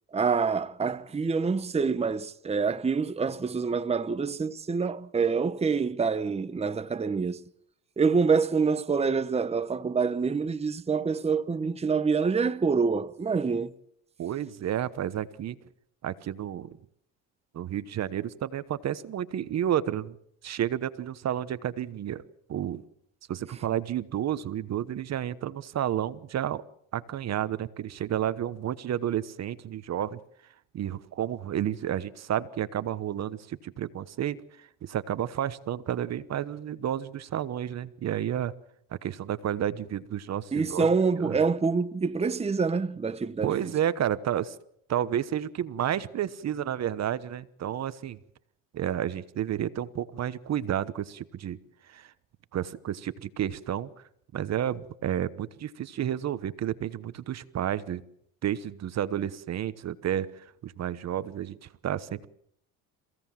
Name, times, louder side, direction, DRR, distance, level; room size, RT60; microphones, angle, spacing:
voice 1, 0.1-7.4 8.0-13.7 40.5-43.5, right 5 dB, 15° right, 1.0 m, -26 dB
voice 2, 14.2-15.6 16.0-16.8 17.5-20.1 20.4-22.2 22.5-22.8 23.3-26.6 26.9-30.2 30.7-38.5 39.0-40.9 41.2-41.4 43.4-44.6 44.9-48.2 48.7-51.6 51.9-52.1 52.5-53.9 54.3-58.0 58.4-62.3, right 10 dB, 45° right, 1.1 m, -31 dB
29.0 x 16.5 x 7.4 m
cardioid pair, 100°, 36 cm